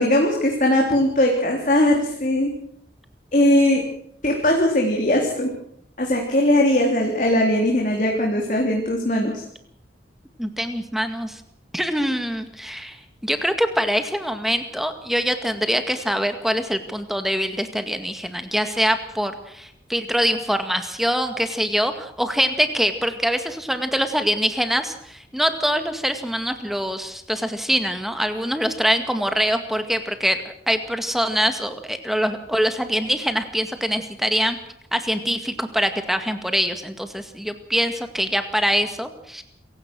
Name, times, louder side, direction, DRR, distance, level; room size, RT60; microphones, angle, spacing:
voice 1, 0.0-2.5 3.3-3.8 4.2-5.5 6.0-9.4, left 1 dB, 45° left, 0 dB, 3.6 m, -19 dB
voice 2, 10.4-11.4 11.7-13.0 13.2-34.6 34.9-39.4, equal, ahead, 8 dB, 1.9 m, -24 dB
27.5 x 16.0 x 6.3 m, 0.69 s
head